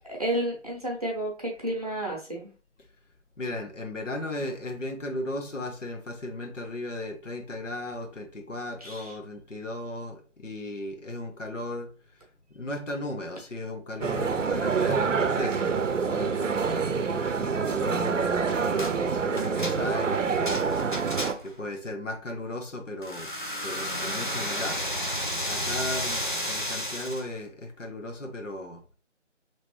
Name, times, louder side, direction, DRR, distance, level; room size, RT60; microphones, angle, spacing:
voice 1, 0.1-2.5 8.8-9.2, right 1 dB, 30° right, -2 dB, 0.8 m, -31 dB
voice 2, 3.4-21.2 21.4-23.3 23.6-24.8 25.4-28.8, left 1 dB, 80° left, 3 dB, 1.1 m, -36 dB
sound 1, 14.0-21.3, right 5 dB, 80° right, 0.6 m, -26 dB
sound 2, 18.8-19.0 19.4-21.6 23.0-27.3, equal, 45° left, 0.4 m, -32 dB
3.3 x 3.0 x 3.0 m, 0.37 s
figure-of-eight pair, 170°, 37 cm